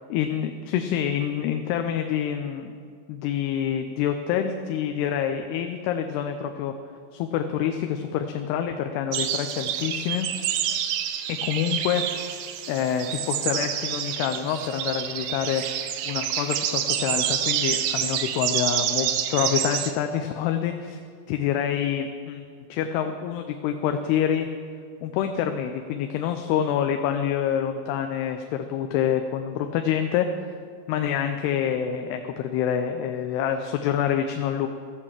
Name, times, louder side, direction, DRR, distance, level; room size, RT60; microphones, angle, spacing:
voice 1, 0.1-2.7 3.1-6.7 7.1-10.3 11.3-12.3 12.7-15.6 16.1-21.0 21.3-24.5 25.0-30.3 30.9-34.7, left 9 dB, 80° left, 6 dB, 2.6 m, -27 dB
sound 1, 9.1-19.9, right 10 dB, 80° right, 2.3 m, -28 dB
14.5 x 8.5 x 7.3 m, 2.2 s
omnidirectional pair, 4.8 m